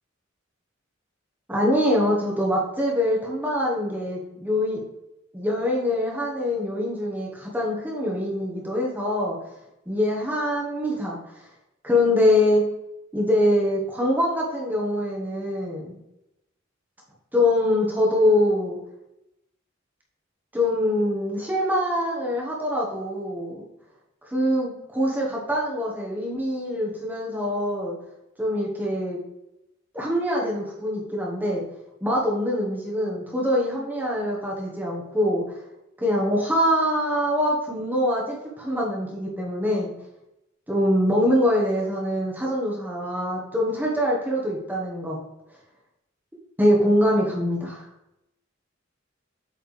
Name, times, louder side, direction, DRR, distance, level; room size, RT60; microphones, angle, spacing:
voice 1, 1.5-4.8 5.3-9.4 9.9-11.4 11.8-12.6 13.1-16.0 17.3-18.8 20.5-23.6 24.2-27.9 28.4-29.2 29.9-31.6 32.0-35.6 36.0-39.9 40.7-45.2 46.6-47.9, left 1 dB, 10° right, -4 dB, 1.3 m, -24 dB
8.2 x 4.5 x 3.3 m, 0.88 s
head